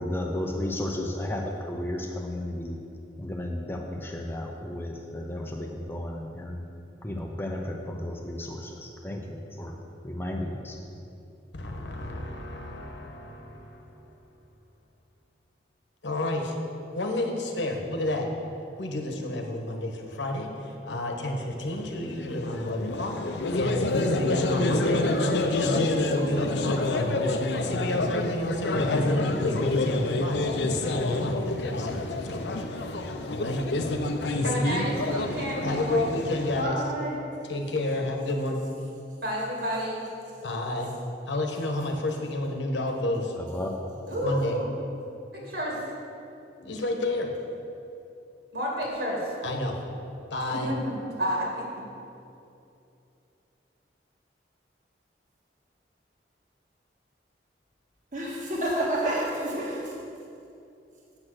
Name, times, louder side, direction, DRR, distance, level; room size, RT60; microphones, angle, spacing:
voice 1, 0.0-2.8 3.2-6.7 7.0-9.7 10.0-10.8 43.4-43.8, left 1 dB, 10° left, 1 dB, 0.6 m, -33 dB
voice 2, 11.5-14.0 16.0-16.6 16.9-18.3 18.8-27.1 27.7-30.5 31.2-32.5 33.3-33.7 34.3-34.6 35.6-36.8 37.5-38.6 40.4-40.9 41.2-43.3 44.2-44.6 46.6-47.4 49.4-49.8 50.3-50.7, left 1 dB, 90° left, 2 dB, 1.2 m, -30 dB
sound 1, 21.7-36.6, left 2 dB, 75° left, 0.6 m, -28 dB
voice 3, 34.4-36.1 39.2-40.0 44.1-44.7 45.3-45.8 48.5-49.3 50.5-50.8 51.0-51.7, equal, 65° right, -3 dB, 2.3 m, -30 dB
voice 4, 36.5-37.2 58.1-60.0, right 1 dB, 45° right, -4 dB, 1.6 m, -29 dB
8.8 x 6.1 x 6.4 m, 2.7 s
head